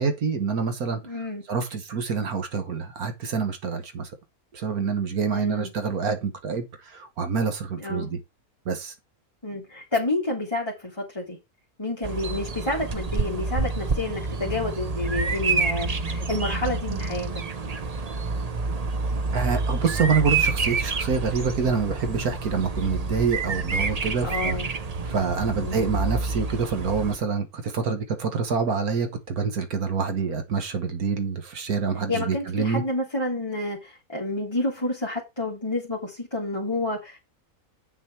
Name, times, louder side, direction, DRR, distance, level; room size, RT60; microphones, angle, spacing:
voice 1, 0.0-1.0 1.5-4.1 4.5-8.2 8.7-8.9 19.3-24.6 25.0-32.8, right 5 dB, 75° right, 1.8 m, -26 dB
voice 2, 1.0-1.4 5.3-5.7 7.8-8.1 9.4-11.4 11.8-17.4 24.2-24.7 25.4-25.9 32.1-37.2, left 2 dB, 15° left, 2.1 m, -29 dB
Bird vocalization bird call bird song, 12.0-27.2, right 4 dB, 35° right, 0.7 m, -28 dB
8.5 x 6.3 x 4.4 m
omnidirectional pair, 1.6 m